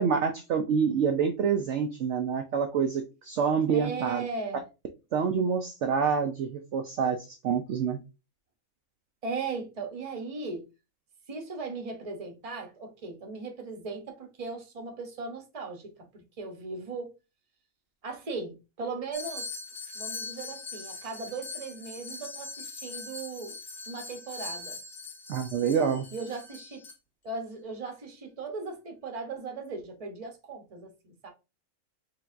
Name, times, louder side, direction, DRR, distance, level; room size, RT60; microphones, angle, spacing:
voice 1, 0.0-4.2 5.1-8.0 25.3-26.1, right 6 dB, 65° right, 0.8 m, -27 dB
voice 2, 3.7-4.6 9.2-10.7 11.3-17.1 18.0-19.5 19.9-23.6 23.9-24.8 26.1-26.8 27.2-31.3, right 4 dB, 30° right, 0.8 m, -38 dB
sound 1, 19.1-26.9, left 3 dB, 45° left, 1.5 m, -41 dB
4.6 x 3.3 x 2.5 m
omnidirectional pair, 1.5 m